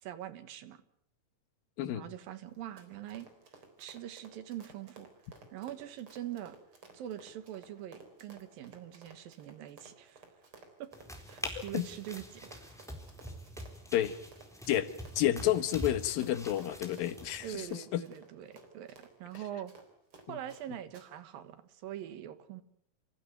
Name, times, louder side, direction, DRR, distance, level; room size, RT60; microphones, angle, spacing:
voice 1, 0.0-0.8 1.9-3.3 3.8-5.1 5.5-6.6 6.9-10.2 10.8-10.9 11.3-12.7 17.4-19.7 20.3-22.6, right 11 dB, 90° right, 11 dB, 3.2 m, -43 dB
Run, 2.5-20.6 20.9-21.1, right 4 dB, 40° right, 4.4 m, -55 dB
sound 1, 10.9-17.5, equal, ahead, 3.7 m, -45 dB
voice 2, 15.2-17.5 17.9-18.0, left 12 dB, 85° left, 12 dB, 3.1 m, -29 dB
28.5 x 15.5 x 9.2 m, 0.71 s
omnidirectional pair, 4.0 m